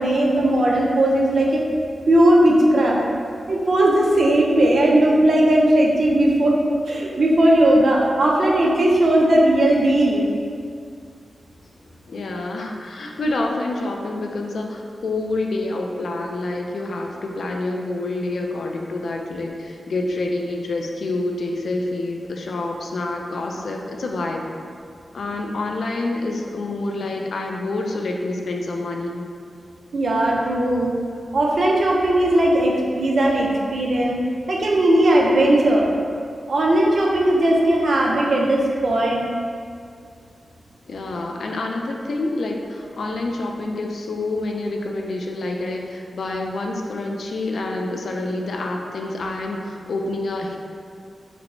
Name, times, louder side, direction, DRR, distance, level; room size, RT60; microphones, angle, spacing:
voice 1, 0.0-1.6 2.1-3.0 3.5-6.6 6.9-10.3 29.9-30.9 31.3-34.2 34.5-35.9 36.5-39.2, right 1 dB, 60° right, -2 dB, 0.5 m, -17 dB
voice 2, 12.1-24.5 25.1-29.2 40.9-50.6, left 2 dB, 70° left, 1 dB, 0.3 m, -27 dB
4.4 x 2.0 x 2.6 m, 2.2 s
wide cardioid pair, 130°, 0 cm